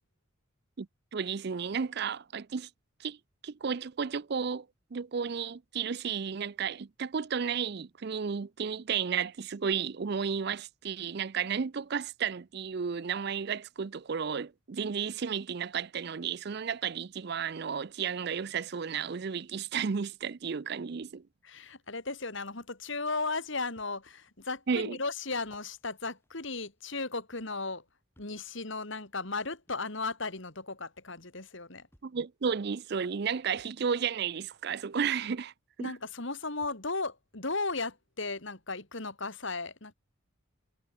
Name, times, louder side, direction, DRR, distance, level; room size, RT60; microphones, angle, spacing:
voice 1, 1.1-2.7 3.0-3.2 3.4-4.7 4.9-21.2 24.7-25.0 32.0-35.5 35.8-35.9, right 6 dB, 50° right, 0.5 m, -33 dB
voice 2, 21.4-27.8 28.2-31.9 35.8-39.9, left 3 dB, 60° left, 2.8 m, -36 dB
sound 1, 23.8-23.9 24.6-24.7 25.4-27.3 28.1-28.5 29.7-29.8 31.1-31.2 31.9-32.3 33.6-33.8 35.4-35.5 36.6-36.9 37.7-37.8, equal, 10° left, 6.4 m, -66 dB
head